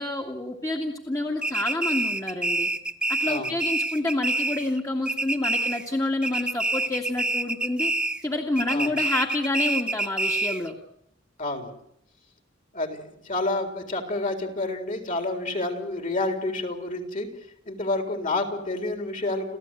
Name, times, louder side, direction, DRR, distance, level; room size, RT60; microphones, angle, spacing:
voice 1, 0.0-2.7 3.1-7.9 8.2-10.7, left 2 dB, 20° left, 1 dB, 2.2 m, -28 dB
sound 1, 1.4-4.8 5.0-6.0 6.2-8.3 8.6-10.7, right 2 dB, 5° right, 1.0 m, -27 dB
voice 2, 11.4-11.7 12.7-17.3 17.7-19.6, left 2 dB, 45° left, 6 dB, 4.1 m, -29 dB
30.0 x 14.5 x 9.2 m, 0.73 s
head